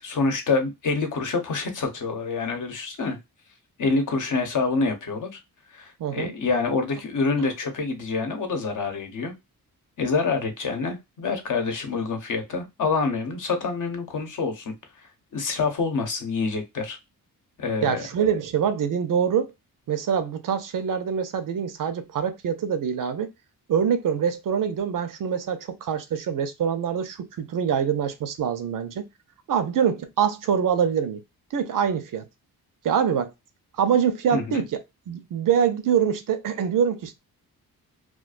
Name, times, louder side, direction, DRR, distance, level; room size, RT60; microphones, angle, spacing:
voice 1, 0.0-3.2 3.8-5.4 5.7-9.3 10.0-14.7 15.3-17.0 17.6-18.1 34.3-34.6, left 4 dB, 55° left, 0.9 m, -26 dB
voice 2, 6.0-6.3 17.8-19.5 19.9-23.3 23.7-29.0 29.5-31.2 31.5-32.3 32.8-33.3 33.8-34.8 35.1-37.1, right 8 dB, 60° right, 0.5 m, -24 dB
2.4 x 2.2 x 2.4 m
cardioid pair, 110°, 36 cm